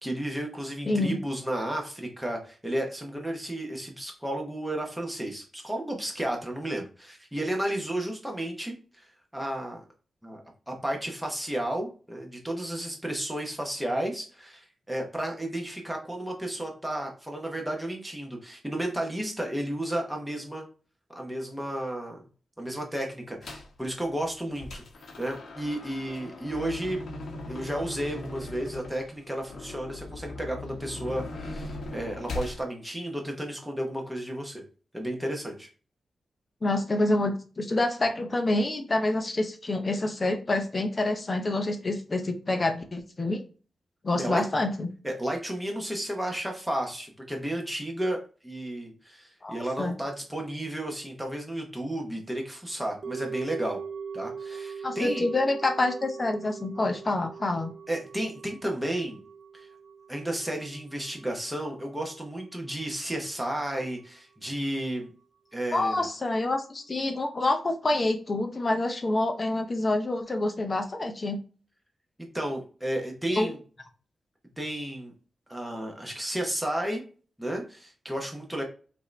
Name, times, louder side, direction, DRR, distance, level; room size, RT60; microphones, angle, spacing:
voice 1, 0.0-9.8 10.2-10.4 10.7-20.7 21.1-22.2 22.6-24.8 25.2-27.0 27.5-34.6 34.9-35.7 44.2-44.4 45.0-53.8 54.1-55.2 57.9-59.2 59.5-59.7 60.1-65.1 65.5-66.1 72.3-73.6 74.6-75.1 75.5-77.0 77.4-78.6, right 1 dB, 5° right, 1 dB, 0.9 m, -33 dB
voice 2, 0.9-1.2 36.6-43.4 44.0-44.9 49.4-49.9 54.8-57.7 65.7-71.4 73.3-73.5, left 2 dB, 25° left, 5 dB, 0.6 m, -27 dB
sound 1, 23.4-23.8 24.2-32.6, left 2 dB, 85° left, 0.9 m, -39 dB
sound 2, 53.0-63.3 63.6-63.7, right 6 dB, 55° right, 0.4 m, -41 dB
5.5 x 2.7 x 3.2 m, 0.38 s
wide cardioid pair, 175°, 0 cm